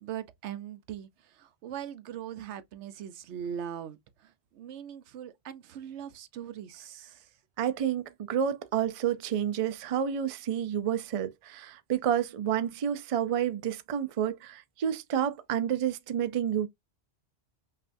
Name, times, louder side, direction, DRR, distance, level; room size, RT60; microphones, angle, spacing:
voice 1, 0.0-7.3, right 9 dB, 90° right, 0.9 m, -41 dB
voice 2, 7.6-16.7, right 9 dB, 55° right, 0.4 m, -29 dB
5.6 x 2.5 x 2.5 m
omnidirectional pair, 1.1 m